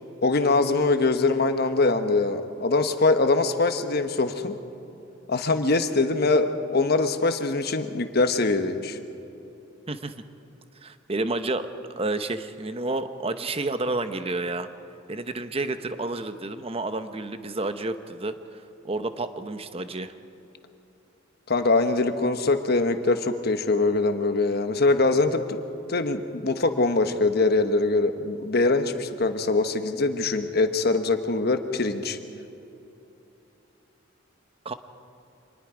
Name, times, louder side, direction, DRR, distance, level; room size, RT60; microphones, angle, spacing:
voice 1, 0.2-4.6 5.3-9.0 21.5-25.6 25.9-32.2, left 3 dB, 55° left, 8 dB, 1.2 m, -23 dB
voice 2, 10.8-11.7 12.0-14.7 15.1-20.1 34.6-34.7, right 2 dB, 30° right, 10 dB, 0.9 m, -30 dB
26.0 x 20.0 x 5.0 m, 2.9 s
head